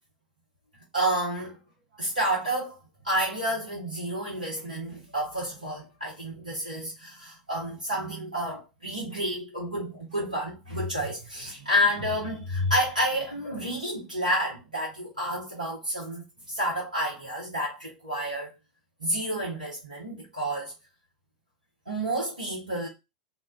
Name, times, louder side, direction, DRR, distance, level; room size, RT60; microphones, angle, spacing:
voice 1, 0.9-1.6 2.0-2.8 3.0-18.5 19.0-20.7 21.9-22.9, equal, 85° right, 0.7 m, -30 dB
2.1 x 2.0 x 3.5 m
figure-of-eight pair, 85°, 4 cm